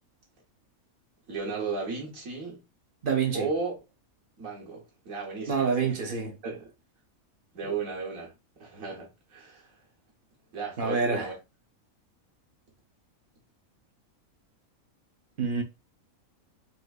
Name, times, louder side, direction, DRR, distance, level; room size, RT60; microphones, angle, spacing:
voice 1, 1.3-2.6 3.3-3.7 4.4-6.0 6.4-6.7 7.5-8.3 8.6-9.8 10.5-11.3, right 4 dB, 70° right, 1.4 m, -35 dB
voice 2, 3.0-3.5 5.5-6.3 7.6-7.7 10.8-11.3 15.4-15.6, right 5 dB, 50° right, 0.7 m, -27 dB
4.3 x 2.5 x 2.3 m
omnidirectional pair, 1.5 m